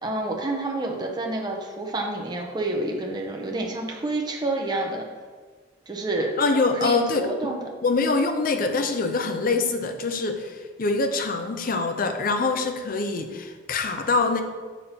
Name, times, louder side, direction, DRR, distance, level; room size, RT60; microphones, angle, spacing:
voice 1, 0.0-5.1 5.9-6.3 6.8-7.6, right 2 dB, 20° right, 0 dB, 0.6 m, -28 dB
voice 2, 6.4-7.6 7.8-14.4, left 3 dB, 45° left, 6 dB, 0.5 m, -24 dB
7.0 x 5.5 x 2.8 m, 1.5 s
head